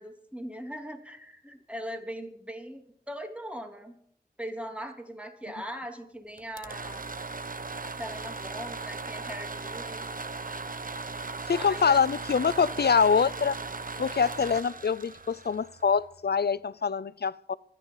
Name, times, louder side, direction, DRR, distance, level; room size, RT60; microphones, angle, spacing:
voice 1, 0.0-4.0 4.4-7.0 7.8-10.1 11.5-12.0, equal, 5° right, 3.2 m, -40 dB
sound 1, 6.4-16.2, right 3 dB, 60° right, 1.1 m, -38 dB
voice 2, 11.5-13.6 14.0-17.5, left 6 dB, 85° left, 0.5 m, -25 dB
25.5 x 9.9 x 4.0 m
wide cardioid pair, 40°, 16 cm